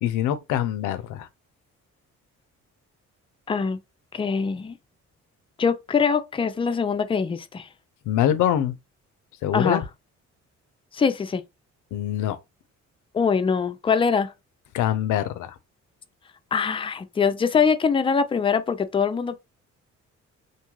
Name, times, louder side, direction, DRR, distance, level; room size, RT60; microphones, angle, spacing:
voice 1, 0.0-1.3 8.1-8.7 9.4-9.8 11.9-12.4 14.7-15.5, left 11 dB, 85° left, 0.5 m, -24 dB
voice 2, 3.5-3.8 4.1-4.7 5.6-7.7 9.5-9.8 10.9-11.4 13.1-14.3 16.5-19.4, left 6 dB, 20° left, 0.4 m, -23 dB
2.6 x 2.3 x 3.0 m
cardioid pair, 90°, 30 cm